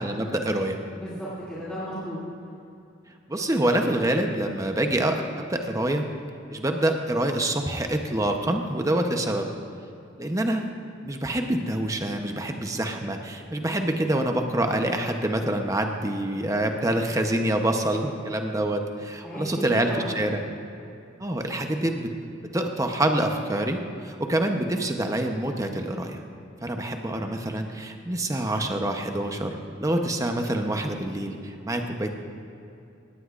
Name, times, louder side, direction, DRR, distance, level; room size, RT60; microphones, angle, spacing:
voice 1, 0.0-0.8 3.3-6.1 6.5-9.5 10.2-10.7 11.0-19.9 20.1-20.4 21.2-22.1 22.4-26.2 26.6-32.1, right 1 dB, 15° right, 4 dB, 0.8 m, -26 dB
voice 2, 0.9-2.2 19.2-20.2, equal, 5° left, -12 dB, 2.7 m, -35 dB
18.0 x 18.0 x 2.5 m, 2.6 s
head